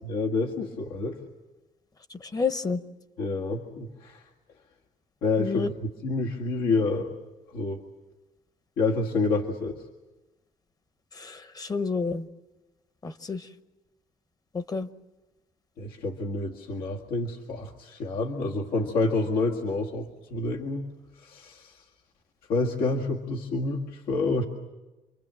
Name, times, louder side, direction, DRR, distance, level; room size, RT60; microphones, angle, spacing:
voice 1, 0.0-1.2 3.2-4.2 5.2-7.2 7.5-7.8 8.8-9.7 15.8-20.8 21.2-21.8 22.5-24.4, left 3 dB, 85° left, -1 dB, 2.0 m, -28 dB
voice 2, 2.1-2.8 5.4-5.7 11.1-12.2 13.0-13.5 14.5-14.9, left 4 dB, 25° left, 12 dB, 0.9 m, -30 dB
28.5 x 24.0 x 7.6 m, 1.1 s
cardioid pair, 150°, 15 cm